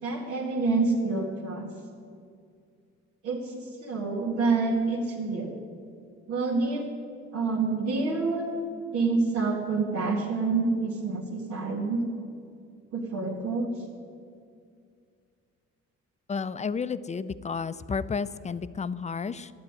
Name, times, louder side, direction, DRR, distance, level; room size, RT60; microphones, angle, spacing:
voice 1, 0.0-1.7 3.2-5.6 6.3-6.8 7.3-8.5 8.9-12.0 12.9-13.7, right 3 dB, 80° right, -5 dB, 2.0 m, -27 dB
voice 2, 16.3-19.5, left 5 dB, 25° left, 14 dB, 0.5 m, -32 dB
12.5 x 8.6 x 9.7 m, 2.3 s
cardioid pair, 90°, 30 cm